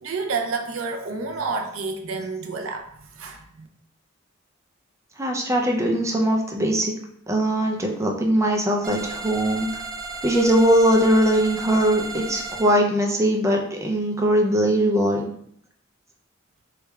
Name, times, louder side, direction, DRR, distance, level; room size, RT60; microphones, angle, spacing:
voice 1, 0.0-3.7, right 4 dB, 90° right, 4 dB, 0.5 m, -29 dB
voice 2, 5.2-6.9 7.3-9.7 10.2-15.3, right 1 dB, 15° right, 1 dB, 0.4 m, -21 dB
sound 1, 8.8-12.7, right 3 dB, 45° right, 1.0 m, -34 dB
3.4 x 2.3 x 3.1 m, 0.66 s
head